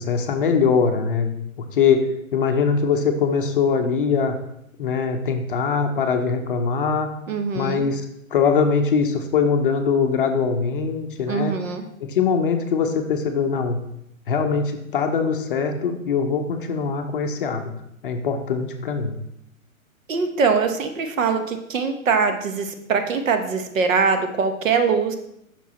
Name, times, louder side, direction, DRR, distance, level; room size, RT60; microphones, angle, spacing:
voice 1, 0.0-1.3 1.7-2.0 2.3-4.4 4.8-7.1 7.5-8.0 8.3-11.5 12.0-13.8 14.3-17.7 18.0-19.2, left 5 dB, 40° left, 5 dB, 0.6 m, -22 dB
voice 2, 7.3-7.8 11.3-11.8 20.1-25.1, right 5 dB, 65° right, 7 dB, 1.0 m, -22 dB
5.9 x 4.6 x 4.1 m, 0.78 s
hypercardioid pair, 145°, 42 cm